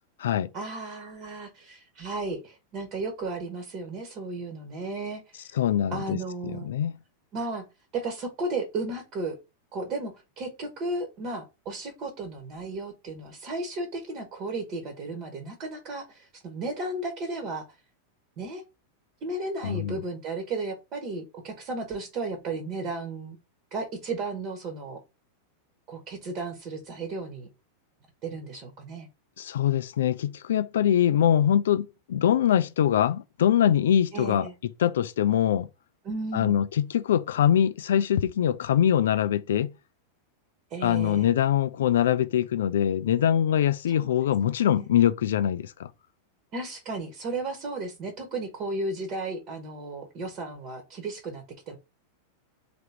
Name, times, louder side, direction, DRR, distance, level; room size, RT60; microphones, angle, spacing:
voice 1, 0.5-5.3 5.9-6.7 7.3-7.6 7.9-9.4 9.7-17.6 18.4-18.6 19.2-23.4 23.7-25.0 25.9-27.5 28.2-29.1 34.1-34.5 36.0-36.5 40.7-41.3 44.0-44.1 44.8-44.9 46.5-51.8, right 3 dB, 40° right, 1.2 m, -34 dB
voice 2, 5.5-7.0 19.6-20.0 29.4-35.7 36.3-39.7 40.8-45.9, left 10 dB, 60° left, 0.3 m, -23 dB
3.5 x 2.9 x 4.6 m
figure-of-eight pair, 90°, 0 cm